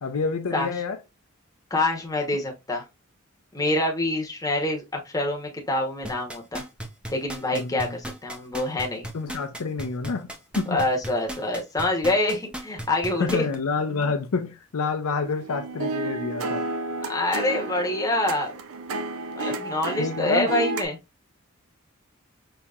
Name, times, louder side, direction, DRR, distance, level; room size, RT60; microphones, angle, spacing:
voice 1, 0.0-1.0 7.5-7.9 9.1-10.9 13.2-16.6 20.0-20.5, left 4 dB, 75° left, 0.6 m, -28 dB
voice 2, 1.7-2.9 3.5-6.6 7.1-9.1 10.7-13.4 17.1-18.5 19.4-21.0, left 1 dB, 15° left, 0.9 m, -26 dB
sound 1, 6.0-13.6 14.0-14.1, right 1 dB, 5° right, 0.5 m, -35 dB
sound 2, 15.2-20.9, right 2 dB, 70° right, 0.5 m, -32 dB
5.5 x 2.9 x 2.4 m
head